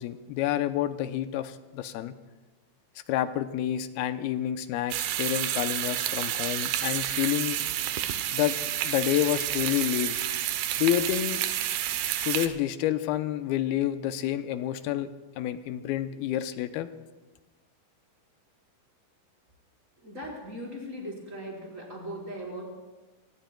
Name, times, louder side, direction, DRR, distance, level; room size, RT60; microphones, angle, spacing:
voice 1, 0.0-2.1 3.1-7.6 8.3-8.6 8.8-10.2 10.8-11.4 12.2-15.1 15.4-16.9, left 12 dB, 80° left, 10 dB, 2.5 m, -29 dB
sound 1, 4.9-12.5, right 12 dB, 80° right, 2.9 m, -30 dB
voice 2, 20.0-22.6, equal, 20° right, -4 dB, 4.9 m, -39 dB
29.0 x 19.5 x 2.3 m, 1.2 s
omnidirectional pair, 4.7 m